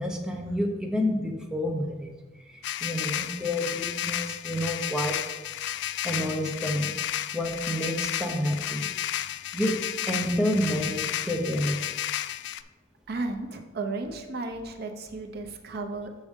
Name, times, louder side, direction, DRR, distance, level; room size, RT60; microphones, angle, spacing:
voice 1, 0.0-2.1 2.5-5.2 6.0-6.9 7.3-8.9 9.5-11.8, equal, 5° right, 1 dB, 0.7 m, -29 dB
sound 1, 2.6-12.6, left 12 dB, 65° left, 0.3 m, -32 dB
voice 2, 13.1-16.2, right 3 dB, 55° right, 5 dB, 0.7 m, -34 dB
6.7 x 6.4 x 3.6 m, 1.2 s
head